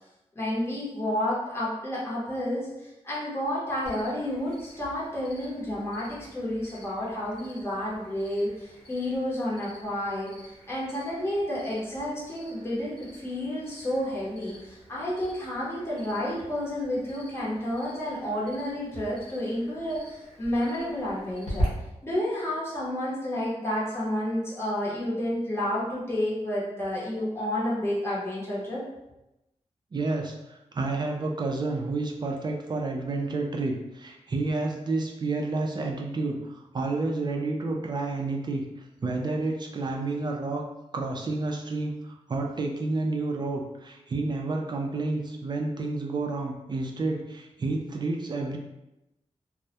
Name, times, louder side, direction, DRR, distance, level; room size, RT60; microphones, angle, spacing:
voice 1, 0.4-10.3 10.7-21.7 22.0-28.8, left 1 dB, 20° left, -7 dB, 0.7 m, -30 dB
Cricket, 3.8-21.6, equal, 55° left, 0.9 m, -43 dB
voice 2, 29.9-38.6 39.0-40.6 40.9-48.6, right 3 dB, 40° right, 1 dB, 0.3 m, -30 dB
2.2 x 2.0 x 2.7 m, 0.92 s
wide cardioid pair, 95°, 12 cm